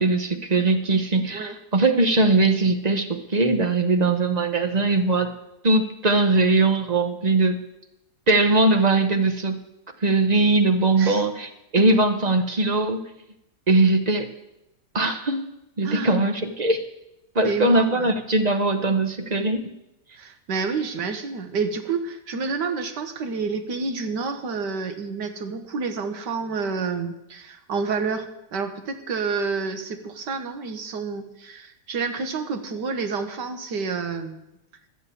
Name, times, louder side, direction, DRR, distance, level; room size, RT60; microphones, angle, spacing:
voice 1, 0.0-5.3 5.6-7.6 8.3-9.6 10.0-13.0 13.7-14.3 14.9-15.5 15.8-16.8 17.3-19.7, right 2 dB, 35° right, 6 dB, 0.7 m, -20 dB
voice 2, 15.8-16.2 17.4-18.2 20.2-34.4, right 4 dB, 75° right, 7 dB, 1.8 m, -29 dB
12.0 x 7.4 x 8.4 m, 0.89 s
omnidirectional pair, 1.9 m